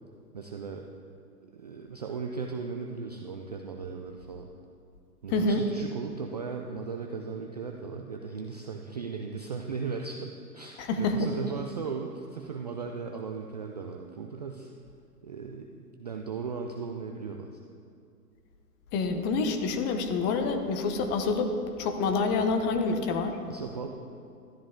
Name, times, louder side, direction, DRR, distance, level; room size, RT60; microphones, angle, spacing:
voice 1, 0.3-0.9 1.5-4.5 5.2-14.7 15.2-17.6 23.5-23.9, right 5 dB, 30° right, 1 dB, 0.3 m, -37 dB
voice 2, 5.3-5.6 10.8-11.3 18.9-21.5 21.8-23.4, left 3 dB, 20° left, 6 dB, 0.8 m, -27 dB
12.5 x 12.0 x 3.7 m, 2.3 s
hypercardioid pair, 125°, 47 cm